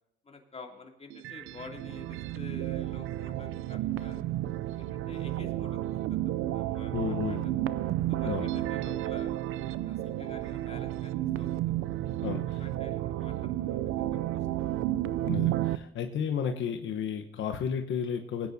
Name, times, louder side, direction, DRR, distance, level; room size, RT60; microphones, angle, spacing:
voice 1, 0.2-4.2 4.8-5.8 6.1-7.6 8.1-9.3 9.8-11.8 12.2-14.5, left 4 dB, 30° left, 2 dB, 2.8 m, -49 dB
sound 1, 1.1-15.8, right 14 dB, 90° right, 0.5 m, -32 dB
voice 2, 6.9-7.5 8.2-8.5 12.2-12.6 15.2-18.5, left 7 dB, 75° left, 5 dB, 1.1 m, -32 dB
19.0 x 9.6 x 2.7 m, 0.86 s
cardioid pair, 90°, 20 cm